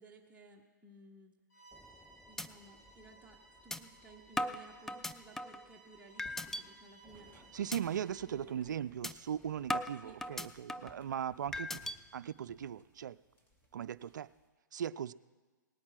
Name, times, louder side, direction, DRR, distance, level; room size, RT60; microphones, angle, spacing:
voice 1, 0.0-1.4 2.3-7.3 8.2-8.7 10.0-10.2, right 3 dB, 10° right, -1 dB, 1.0 m, -58 dB
Bowed string instrument, 1.5-8.4, right 2 dB, 60° left, 3.3 m, -61 dB
sound 1, 1.7-2.0 2.4-2.5 2.9-3.0 3.7-3.8 4.4-5.6 6.2-6.6 7.1-7.3 7.7-7.8 8.2-8.4 9.0-9.1 9.7-11.0 11.5-12.0, left 1 dB, 5° left, 0.3 m, -38 dB
sound 2, 6.2-14.5, right 1 dB, 20° left, 2.4 m, -64 dB
voice 2, 7.5-13.2 13.7-14.3 14.7-15.1, right 9 dB, 65° right, 15 dB, 0.4 m, -39 dB
18.5 x 8.6 x 5.8 m, 1.3 s
figure-of-eight pair, 115°, 10 cm